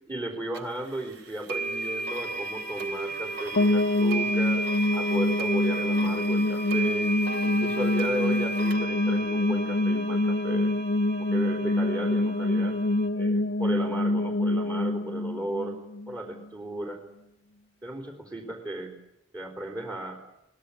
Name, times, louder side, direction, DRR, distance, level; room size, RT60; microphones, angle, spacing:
voice 1, 0.0-4.7 4.9-7.2 7.4-10.8 11.2-12.8 13.1-15.8 16.1-17.0 17.8-19.0 19.3-20.3, right 1 dB, 20° right, -2 dB, 3.9 m, -35 dB
sound 1, 0.5-0.6 1.5-13.1, right 2 dB, 55° right, 3.2 m, -34 dB
sound 2, 3.6-16.4, left 1 dB, 70° left, 0.9 m, -26 dB
23.5 x 20.0 x 8.6 m, 0.83 s
head